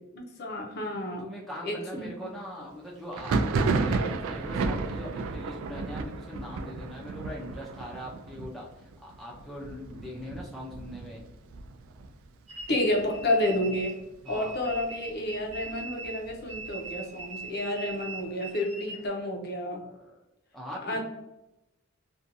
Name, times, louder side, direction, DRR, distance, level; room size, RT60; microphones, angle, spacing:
voice 1, 0.1-1.2 1.6-2.1 12.7-13.9 14.3-19.8 20.8-21.0, left 1 dB, 50° left, 2 dB, 0.5 m, -30 dB
voice 2, 1.2-11.2 14.2-14.5 19.8-20.2 20.5-21.0, left 1 dB, ahead, -4 dB, 0.4 m, -41 dB
Thunder, 3.1-12.6 12.9-13.6 13.8-14.8 15.2-16.9, right 3 dB, 85° right, 0.3 m, -33 dB
sound 1, 12.5-14.0 14.3-19.1, right 3 dB, 30° right, 0.9 m, -41 dB
2.6 x 2.2 x 2.5 m, 0.92 s
head